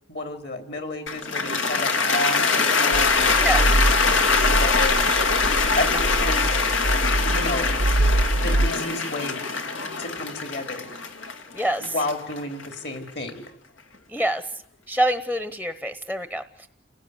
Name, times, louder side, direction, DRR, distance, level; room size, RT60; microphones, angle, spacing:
voice 1, 0.1-5.2 5.8-6.5 7.2-7.8 8.3-9.4 10.0-10.9 11.8-13.4, left 2 dB, 55° left, 6 dB, 3.8 m, -31 dB
Cheering / Applause, 1.1-13.3, left 4 dB, 85° left, 2.9 m, -23 dB
sound 1, 2.9-8.7, right 1 dB, 80° right, 1.0 m, -24 dB
voice 2, 11.5-11.9 14.1-14.4 14.9-16.7, right 1 dB, 5° left, 10 dB, 1.0 m, -26 dB
29.5 x 18.5 x 9.8 m, 0.72 s
head